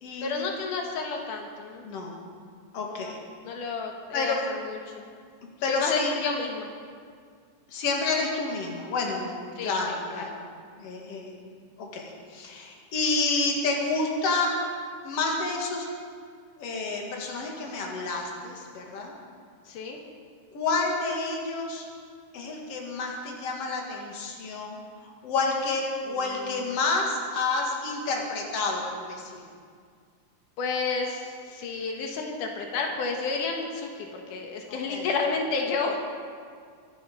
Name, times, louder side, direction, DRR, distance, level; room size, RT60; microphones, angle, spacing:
voice 1, 0.2-1.9 2.9-3.1 3.4-5.0 5.7-6.7 9.6-10.2 19.7-20.0 26.1-26.5 30.6-36.0, left 4 dB, 85° left, 2 dB, 2.9 m, -31 dB
voice 2, 2.7-3.2 4.1-4.4 5.6-6.1 7.7-10.3 10.8-11.3 11.8-14.5 15.0-15.9 16.6-19.1 20.5-21.8 22.3-29.4 34.9-35.1, left 3 dB, 55° left, 0 dB, 3.0 m, -29 dB
23.5 x 9.5 x 5.5 m, 2.1 s
omnidirectional pair, 3.6 m